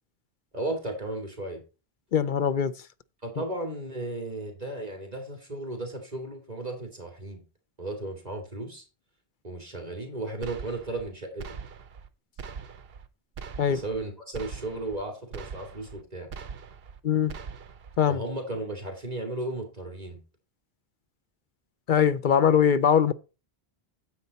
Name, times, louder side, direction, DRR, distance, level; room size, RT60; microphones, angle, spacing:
voice 1, 0.5-1.6 3.2-7.4 7.8-8.8 9.4-11.5 13.7-16.3 18.1-20.2, right 2 dB, 40° right, 2.6 m, -35 dB
voice 2, 2.1-2.7 13.6-13.8 17.0-17.3 18.0-18.2 21.9-23.1, left 8 dB, 60° left, 0.7 m, -21 dB
sound 1, 10.4-11.1 11.4-12.1 12.4-13.1 13.4-14.0 14.3-15.0 15.3-16.0 16.3-17.0 17.3-18.0, right 6 dB, 70° right, 1.0 m, -41 dB
9.5 x 8.0 x 4.1 m
omnidirectional pair, 1.0 m